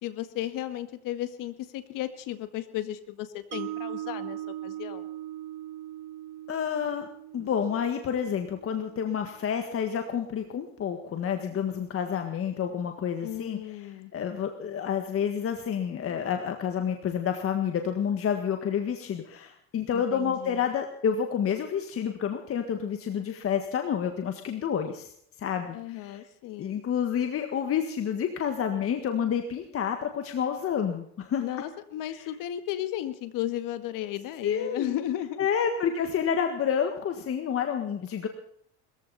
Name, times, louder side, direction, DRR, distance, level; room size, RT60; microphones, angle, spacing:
voice 1, 0.0-5.1 13.2-14.1 19.9-20.7 25.7-26.8 31.4-35.5, left 12 dB, 60° left, 10 dB, 2.0 m, -34 dB
Mallet percussion, 3.5-9.7, right 13 dB, 55° right, 0.7 m, -40 dB
voice 2, 6.5-7.1 7.3-13.6 14.1-25.1 25.4-26.2 26.6-31.4 32.1-32.2 34.4-35.0 35.4-38.3, left 8 dB, 35° left, 6 dB, 1.7 m, -29 dB
21.0 x 14.5 x 4.2 m, 0.67 s
supercardioid pair, 120°, 37 cm